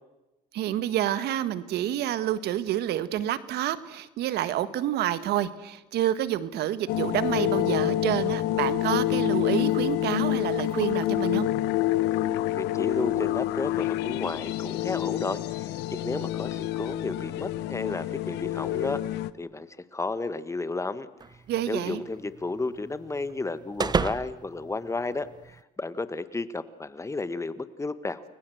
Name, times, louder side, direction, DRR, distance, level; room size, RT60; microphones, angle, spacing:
voice 1, 0.5-11.5 21.5-22.0, right 12 dB, 75° right, 14 dB, 1.6 m, -28 dB
sound 1, 6.9-19.3, left 14 dB, 85° left, 1.0 m, -27 dB
voice 2, 12.5-19.0 19.4-21.1 21.7-28.2, left 3 dB, 15° left, 13 dB, 1.4 m, -33 dB
sound 2, 21.2-25.6, right 5 dB, 25° right, 0.8 m, -34 dB
30.0 x 21.0 x 7.9 m, 1.0 s
cardioid pair, 110°, 17 cm